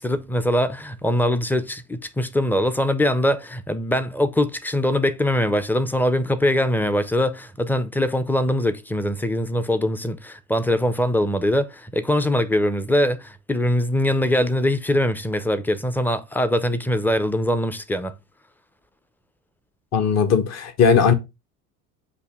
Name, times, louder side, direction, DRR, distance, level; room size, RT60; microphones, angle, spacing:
voice 1, 0.0-18.1, left 1 dB, 5° left, 0.8 m, -22 dB
voice 2, 19.9-21.1, left 6 dB, 35° left, 1.1 m, -18 dB
8.3 x 2.9 x 5.8 m
figure-of-eight pair, 70°, 48 cm